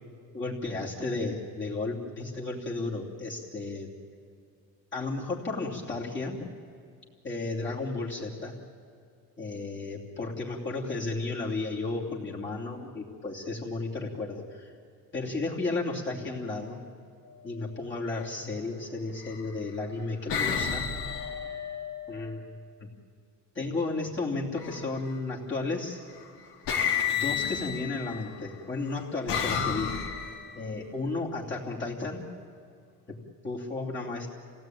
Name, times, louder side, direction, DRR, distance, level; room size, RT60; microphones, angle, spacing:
voice 1, 0.3-3.9 4.9-6.4 7.2-8.5 9.4-14.7 15.1-16.8 17.4-20.9 22.1-22.5 22.8-22.9 23.5-26.0 27.1-29.9 30.5-32.2 33.1-33.2 33.4-34.3, left 3 dB, 30° left, -4 dB, 3.1 m, -33 dB
sound 1, 18.0-18.3 19.2-19.7 20.3-22.3 24.5-25.1 26.1-26.3 26.7-28.3 28.9-30.6, left 7 dB, 80° left, 3.0 m, -31 dB
28.0 x 17.0 x 9.2 m, 2.3 s
cardioid pair, 120°, 40 cm